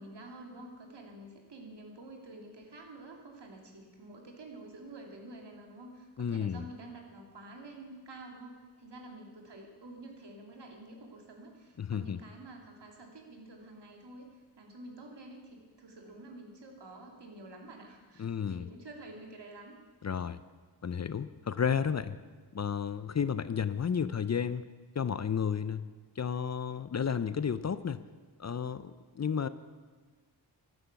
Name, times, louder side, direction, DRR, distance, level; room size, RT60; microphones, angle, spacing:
voice 1, 0.0-19.8, right 2 dB, 80° right, 1 dB, 2.5 m, -49 dB
voice 2, 6.2-6.6 11.8-12.2 18.2-18.7 20.0-20.4 20.8-22.2 22.5-24.6 25.0-25.9 26.2-28.0 28.4-29.5, left 7 dB, 40° left, 14 dB, 0.5 m, -32 dB
14.0 x 11.5 x 5.9 m, 1.5 s
wide cardioid pair, 105°, 41 cm